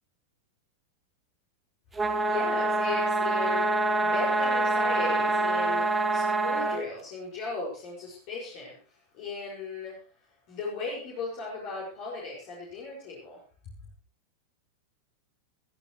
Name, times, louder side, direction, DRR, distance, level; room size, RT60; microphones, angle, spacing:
voice 1, 1.9-10.0 10.5-13.4, left 3 dB, 45° left, -4 dB, 6.2 m, -37 dB
sound 1, 2.0-6.8, right 2 dB, 15° right, 2.3 m, -26 dB
22.5 x 14.0 x 3.3 m, 0.39 s
figure-of-eight pair, 90°, 0 cm